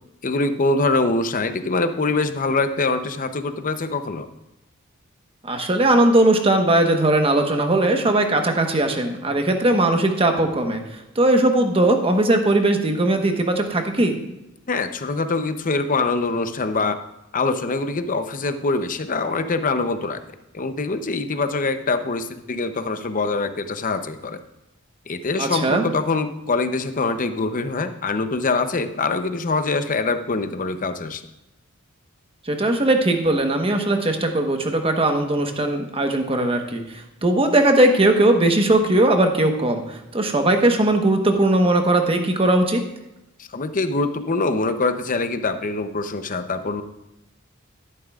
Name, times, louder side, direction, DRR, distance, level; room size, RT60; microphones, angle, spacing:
voice 1, 0.2-4.3 14.7-17.0 17.3-20.2 20.5-24.4 25.1-31.2 43.4-46.8, left 3 dB, 40° left, 9 dB, 0.7 m, -24 dB
voice 2, 5.4-14.2 25.4-25.9 32.5-42.8, right 1 dB, 25° right, 5 dB, 1.1 m, -19 dB
12.0 x 11.0 x 2.4 m, 0.91 s
head